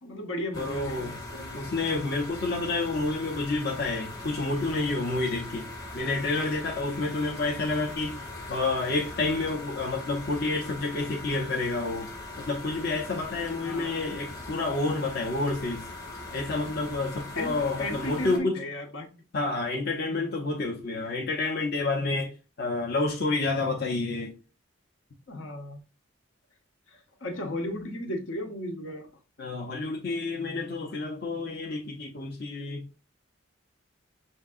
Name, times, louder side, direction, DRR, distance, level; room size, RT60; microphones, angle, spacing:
voice 1, 0.0-1.6 9.2-9.3 13.6-14.0 17.3-19.1 20.1-20.3 23.6-23.7 25.3-25.8 26.9-29.1, left 1 dB, 75° left, 1.0 m, -35 dB
sound 1, 0.5-18.4, left 2 dB, 20° left, 1.0 m, -40 dB
voice 2, 0.6-1.2 1.5-8.2 8.5-12.1 12.4-15.9 16.3-18.6 19.3-22.3 22.6-24.3 29.4-32.8, left 3 dB, 50° left, 0.7 m, -29 dB
6.4 x 2.7 x 2.5 m
head